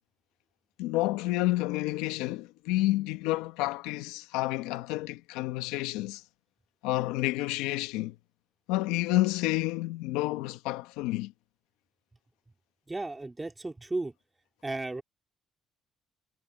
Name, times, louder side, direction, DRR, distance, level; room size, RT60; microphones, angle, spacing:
voice 1, 0.8-6.2 6.8-8.1 8.7-11.3, left 18 dB, 90° left, 1.0 m, -29 dB
voice 2, 12.9-14.1 14.6-15.0, right 2 dB, 20° right, 2.9 m, -34 dB
supercardioid pair, 65°, 0 cm